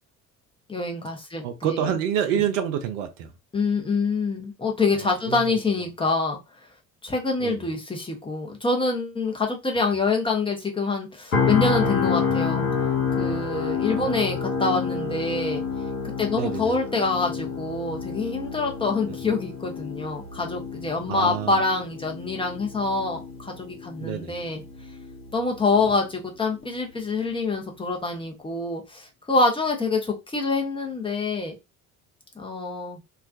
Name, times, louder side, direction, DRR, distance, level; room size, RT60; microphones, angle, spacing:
voice 1, 0.7-1.9 3.5-6.4 7.0-12.6 13.2-15.6 16.2-24.6 25.3-31.5 32.4-33.0, left 3 dB, 15° left, 0.7 m, -26 dB
voice 2, 1.4-3.3 4.9-5.6 7.4-7.7 13.9-14.3 16.3-16.7 21.1-21.6 24.0-24.4, right 9 dB, 65° right, 0.5 m, -28 dB
sound 1, 11.3-25.3 25.7-25.9, left 6 dB, 80° left, 0.8 m, -29 dB
2.3 x 2.1 x 2.5 m
figure-of-eight pair, 55°, 41 cm